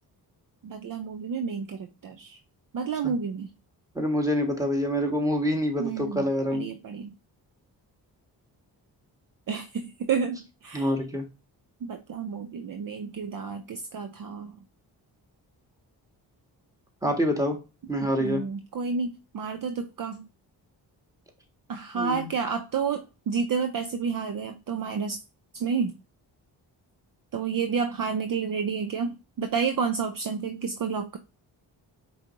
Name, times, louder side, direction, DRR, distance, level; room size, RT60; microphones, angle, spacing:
voice 1, 0.6-2.4 2.7-3.5 5.8-7.1 9.5-10.9 11.8-14.5 18.2-20.2 21.7-25.2 25.5-25.9 27.3-31.2, right 6 dB, 45° right, 7 dB, 0.6 m, -30 dB
voice 2, 3.9-6.7 10.7-11.3 17.0-17.6 17.9-18.4 21.9-22.3, equal, 5° right, 2 dB, 1.5 m, -26 dB
4.9 x 3.1 x 2.6 m, 0.29 s
supercardioid pair, 45°, 45 cm